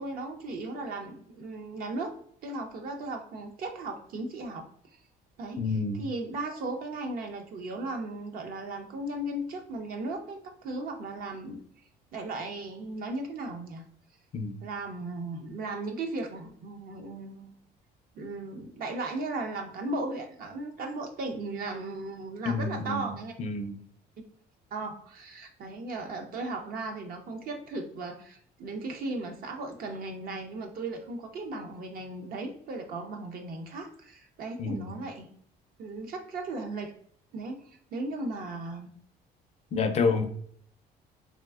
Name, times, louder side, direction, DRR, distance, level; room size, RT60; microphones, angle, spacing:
voice 1, 0.0-2.1 2.4-5.0 5.4-5.6 5.9-11.6 12.1-13.8 14.6-17.6 18.2-23.3 24.7-35.3 35.8-36.9 37.3-38.9 39.8-40.2, right 2 dB, 60° right, 4 dB, 0.6 m, -36 dB
voice 2, 5.6-6.1 14.3-14.6 22.5-23.1 23.4-23.7 34.6-34.8 39.7-40.2, left 4 dB, 40° left, 7 dB, 0.4 m, -28 dB
3.7 x 2.4 x 2.3 m, 0.62 s
cardioid pair, 110°, 17 cm